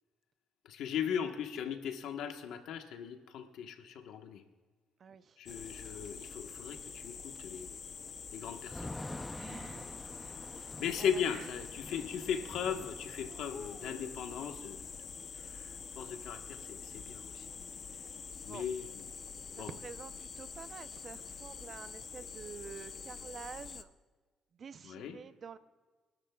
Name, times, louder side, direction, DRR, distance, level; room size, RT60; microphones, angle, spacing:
voice 1, 0.6-4.4 5.4-7.8 8.3-9.0 10.8-14.8 15.3-17.4 18.4-19.1 19.6-19.7 24.8-25.2, left 8 dB, 85° left, 5 dB, 1.3 m, -38 dB
voice 2, 5.0-5.4 9.3-10.7 11.0-11.5 18.4-18.7 19.5-23.9 24.6-25.6, right 6 dB, 50° right, 12 dB, 0.7 m, -49 dB
sound 1, 5.5-23.8, left 6 dB, 45° left, 0.7 m, -46 dB
Thunder / Rain, 8.7-16.5 16.8-16.9 17.2-18.5, left 1 dB, 10° left, 0.6 m, -49 dB
26.0 x 12.5 x 2.4 m, 1.4 s
cardioid pair, 90°, 0 cm